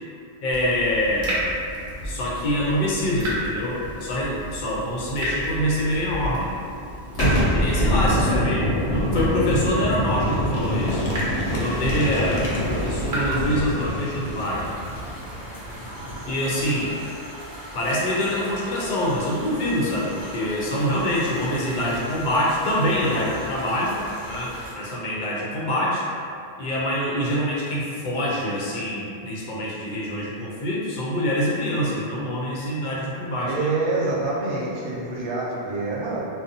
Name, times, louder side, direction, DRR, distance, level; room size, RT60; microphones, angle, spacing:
voice 1, 0.4-1.4 2.0-6.5 7.5-11.1 11.5-14.7 16.3-16.9 17.7-24.0 24.3-26.0 26.6-33.7, equal, 60° left, -5 dB, 0.6 m, -25 dB
Water tap faucet / Drip, 0.5-13.4, equal, 55° right, 0.9 m, -33 dB
Boom, 7.1-16.7, equal, 90° left, 0.9 m, -25 dB
voice 2, 7.8-8.3 33.5-36.3, right 3 dB, 85° right, -5 dB, 0.9 m, -27 dB
sound 1, 11.4-24.7, right 1 dB, 20° right, 0.7 m, -39 dB
2.5 x 2.0 x 2.6 m, 2.5 s
omnidirectional pair, 1.1 m